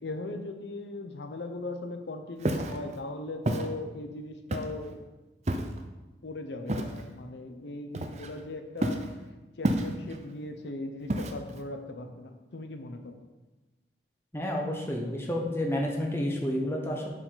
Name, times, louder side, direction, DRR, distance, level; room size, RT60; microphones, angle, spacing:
voice 1, 0.0-5.0 6.2-9.0 9.6-13.2, left 2 dB, 80° left, 6 dB, 0.7 m, -39 dB
Walk footsteps, 2.4-2.8 3.5-3.7 4.5-4.9 5.5-5.8 6.7-7.0 7.9-8.4 8.8-9.1 9.6-10.2 11.1-11.6, right 1 dB, 40° right, 0.6 m, -29 dB
voice 2, 14.3-17.1, left 1 dB, 15° left, 0 dB, 1.0 m, -30 dB
11.0 x 4.9 x 3.8 m, 1.1 s
head